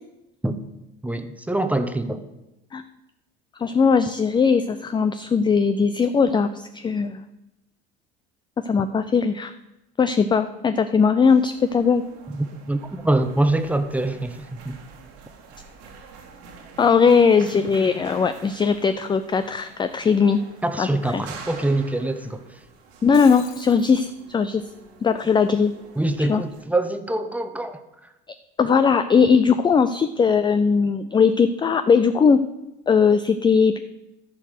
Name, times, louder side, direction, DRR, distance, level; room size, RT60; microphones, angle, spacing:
voice 1, 1.0-2.2 12.3-14.8 20.6-22.4 26.0-27.8, right 2 dB, 5° right, 8 dB, 0.9 m, -24 dB
voice 2, 3.6-7.2 8.7-9.5 10.0-12.0 16.8-20.4 20.8-21.2 23.0-24.6 25.0-25.7 26.3-26.4 28.6-32.4 32.9-33.8, left 5 dB, 15° left, 11 dB, 0.4 m, -19 dB
sound 1, 11.3-26.6, right 5 dB, 75° right, 2.2 m, -46 dB
Shatter, 22.9-24.0, left 11 dB, 65° left, 1.0 m, -43 dB
13.5 x 4.6 x 6.4 m, 0.95 s
hypercardioid pair, 90°, 30 cm